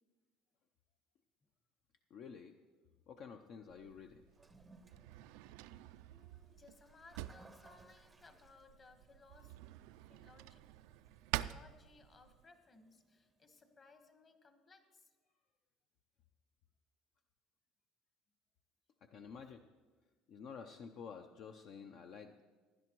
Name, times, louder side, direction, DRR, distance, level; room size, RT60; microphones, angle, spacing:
voice 1, 2.1-2.6 3.1-4.2 19.0-19.6 20.3-22.4, left 6 dB, 55° left, 7 dB, 0.5 m, -51 dB
Drawer open or close, 3.7-12.4, right 15 dB, 85° right, 0.3 m, -48 dB
Toilet flush, 4.3-13.6, right 3 dB, 15° right, 0.6 m, -66 dB
voice 2, 6.1-9.6 10.1-10.6 11.4-15.2, left 4 dB, 30° left, 7 dB, 1.2 m, -63 dB
16.5 x 11.0 x 3.0 m, 1.4 s
cardioid pair, 130°, 0 cm